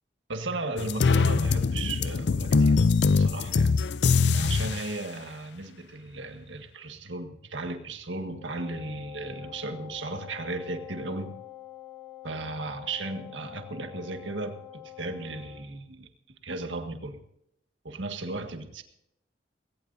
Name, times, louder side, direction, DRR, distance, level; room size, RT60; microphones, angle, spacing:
voice 1, 0.3-2.9 3.1-3.7 4.3-11.4 12.2-16.1 16.4-17.2 17.8-18.8, right 2 dB, 90° right, 6 dB, 1.8 m, -35 dB
sound 1, 0.8-4.8, left 4 dB, 65° left, 0.5 m, -23 dB
Wind instrument woodwind instrument, 8.4-15.7, left 14 dB, 35° left, 4.9 m, -46 dB
19.0 x 17.5 x 2.7 m, 0.77 s
head